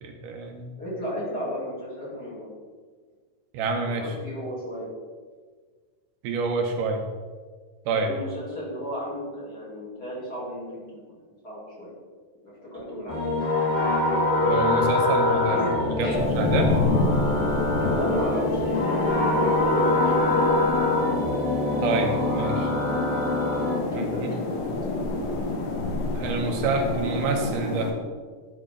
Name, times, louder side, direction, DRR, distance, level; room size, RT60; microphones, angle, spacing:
voice 1, 0.0-0.7 3.5-4.1 6.2-7.0 7.9-8.1 14.4-15.6 16.0-16.7 21.8-22.7 23.9-24.1 26.1-28.0, right 3 dB, 80° right, 3 dB, 2.2 m, -27 dB
voice 2, 0.8-2.5 4.0-4.9 7.9-11.9 12.4-13.5 15.5-15.7 16.0-16.2 17.8-20.6 24.1-24.2 24.5-24.6, equal, 30° left, -7 dB, 2.7 m, -34 dB
sound 1, 13.1-23.7, left 2 dB, 65° left, 4.0 m, -24 dB
sound 2, 16.1-27.9, left 2 dB, 85° left, 2.9 m, -28 dB
11.5 x 5.5 x 3.6 m, 1.5 s
omnidirectional pair, 3.9 m